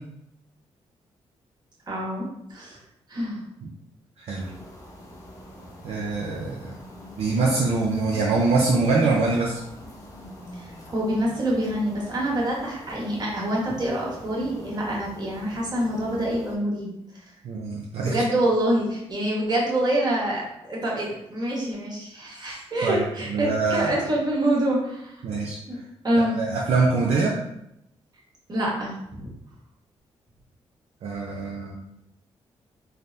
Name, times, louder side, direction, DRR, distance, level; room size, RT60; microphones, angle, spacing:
voice 1, 1.9-2.8 3.1-3.4 10.5-16.9 18.0-25.2 25.7-25.8 26.0-26.4 28.5-29.3, right 1 dB, 40° right, -4 dB, 1.1 m, -26 dB
sound 1, 4.4-16.6, left 1 dB, 30° left, 0.8 m, -44 dB
voice 2, 5.8-6.7 7.2-9.6 17.4-18.2 22.8-23.9 25.2-25.6 26.2-27.3 31.0-31.8, right 3 dB, 70° right, -3 dB, 0.4 m, -24 dB
3.2 x 2.0 x 2.5 m, 0.81 s
cardioid pair, 80°, 11 cm